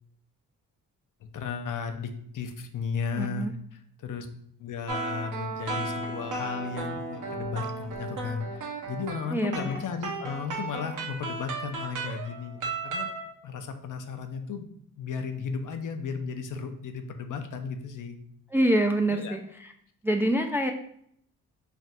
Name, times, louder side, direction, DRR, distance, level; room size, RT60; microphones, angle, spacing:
voice 1, 1.2-4.3 4.6-13.1 13.4-14.7 15.0-18.2 19.1-19.4, left 5 dB, 60° left, 7 dB, 0.6 m, -35 dB
voice 2, 3.2-3.5 9.3-9.8 18.5-19.4 20.0-20.7, right 1 dB, 5° right, 4 dB, 0.3 m, -25 dB
sound 1, 4.9-13.3, right 3 dB, 60° right, 0.9 m, -35 dB
3.4 x 2.4 x 4.1 m, 0.67 s
cardioid pair, 70°, 35 cm